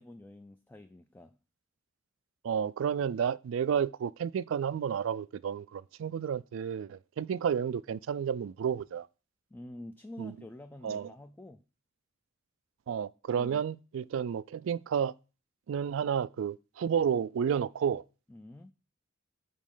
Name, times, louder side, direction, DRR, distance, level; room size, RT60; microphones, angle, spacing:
voice 1, 0.0-1.4 9.5-11.6 13.4-13.6 18.3-18.7, left 1 dB, 10° left, 0.3 m, -48 dB
voice 2, 2.4-9.1 10.2-10.3 10.8-11.1 12.9-15.1 15.7-18.0, right 7 dB, 75° right, 0.3 m, -31 dB
5.2 x 4.3 x 5.5 m
head